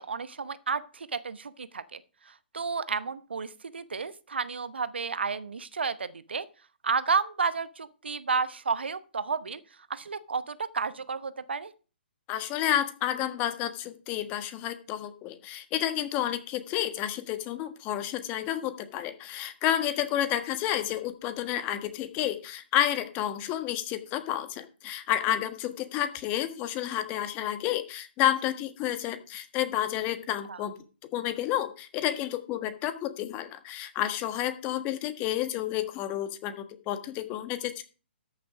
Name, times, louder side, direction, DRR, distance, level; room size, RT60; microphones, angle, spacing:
voice 1, 0.0-2.0 2.3-6.4 6.8-9.6 9.9-11.7 30.5-30.6, right 5 dB, 75° right, 15 dB, 0.9 m, -31 dB
voice 2, 12.3-30.7 31.1-37.8, left 12 dB, 30° left, 10 dB, 1.4 m, -30 dB
13.0 x 6.8 x 4.9 m, 0.36 s
figure-of-eight pair, 130°, 6 cm